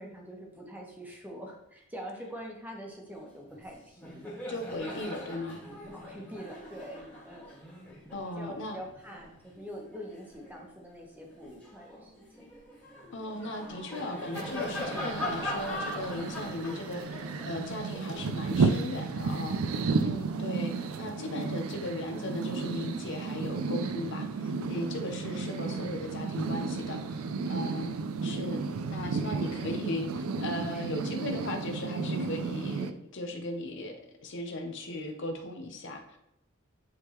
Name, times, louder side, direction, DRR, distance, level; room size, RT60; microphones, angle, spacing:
voice 1, 0.0-4.3 4.9-5.0 5.8-7.5 8.2-12.5 30.7-30.9, equal, 10° right, -1 dB, 1.2 m, -45 dB
Laughter, 3.5-3.7 3.9-10.7 11.2-19.3, left 1 dB, 10° left, 1.7 m, -41 dB
voice 2, 4.5-5.6 8.1-8.8 13.1-28.0 28.2-28.6 28.9-36.2, left 1 dB, 60° left, 4 dB, 0.7 m, -37 dB
sound 1, 14.3-32.9, right 4 dB, 85° right, 0.4 m, -33 dB
9.7 x 3.6 x 3.0 m, 0.84 s
head